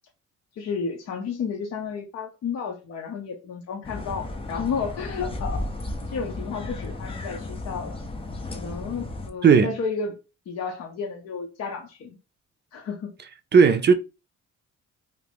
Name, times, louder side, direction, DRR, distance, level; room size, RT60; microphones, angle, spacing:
voice 1, 0.5-5.7 6.1-8.0 8.5-10.2 10.5-12.2 12.7-13.1, left 5 dB, 60° left, 0.6 m, -32 dB
sound 1, 3.8-9.3, left 2 dB, 20° left, 0.5 m, -34 dB
voice 2, 9.4-9.7 13.5-13.9, right 6 dB, 35° right, 0.5 m, -15 dB
2.5 x 2.5 x 3.3 m
cardioid pair, 90°, 30 cm